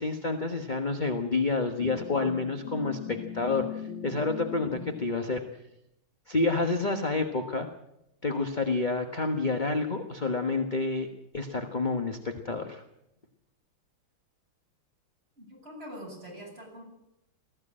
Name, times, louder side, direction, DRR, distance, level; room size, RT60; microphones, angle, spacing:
voice 1, 0.0-5.4 6.3-7.7 8.2-11.1 11.3-12.8, left 3 dB, 25° left, 5 dB, 1.2 m, -29 dB
sound 1, 1.8-5.1, left 8 dB, 75° left, 2.4 m, -39 dB
voice 2, 15.4-16.8, equal, 25° right, -1 dB, 8.4 m, -44 dB
19.5 x 15.0 x 8.8 m, 0.84 s
omnidirectional pair, 2.3 m